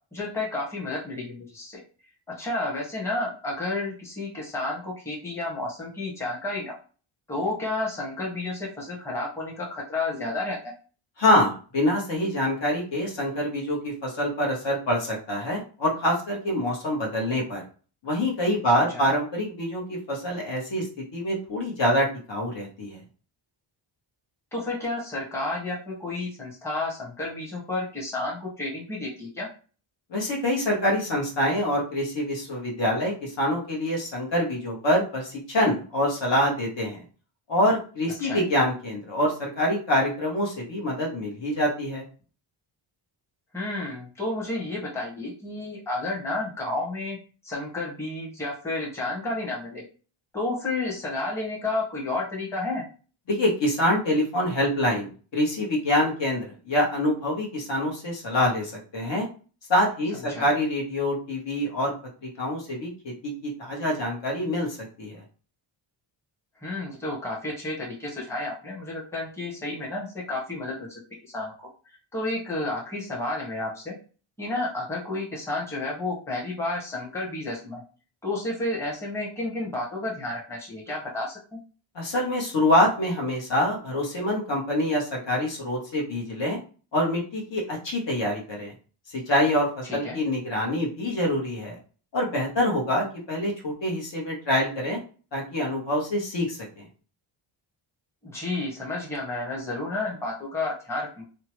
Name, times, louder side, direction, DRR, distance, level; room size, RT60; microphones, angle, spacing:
voice 1, 0.1-1.8 2.4-6.7 7.3-10.6 18.7-19.1 24.5-29.5 38.2-38.5 43.5-47.2 47.4-49.8 50.3-52.8 60.1-60.5 66.6-74.0 74.4-77.8 78.2-81.6 89.8-90.2 98.2-101.2, left 2 dB, 5° left, -3 dB, 0.9 m, -31 dB
voice 2, 11.2-17.6 18.0-20.9 21.1-23.0 30.1-37.0 37.5-42.0 53.3-59.3 59.7-61.9 62.2-64.7 65.0-65.2 81.9-86.6 86.9-88.7 89.1-91.8 92.1-95.0 95.3-96.8, left 1 dB, 60° left, -1 dB, 1.1 m, -25 dB
2.8 x 2.2 x 3.0 m, 0.38 s
wide cardioid pair, 120°, 50 cm